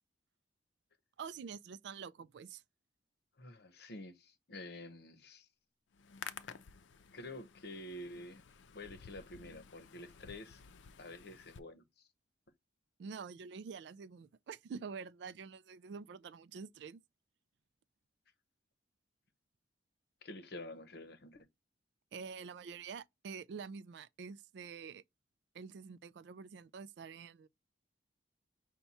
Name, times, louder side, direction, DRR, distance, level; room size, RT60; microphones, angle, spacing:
voice 1, 1.2-2.6 13.0-17.0 22.1-25.0 25.5-27.5, right 5 dB, 65° right, 0.3 m, -47 dB
voice 2, 3.4-5.5 7.1-8.5 8.7-10.6 11.0-12.1 20.2-21.5, left 1 dB, 60° left, 0.8 m, -49 dB
Hands, 5.9-11.6, left 7 dB, 85° left, 0.5 m, -53 dB
5.7 x 2.2 x 4.1 m
head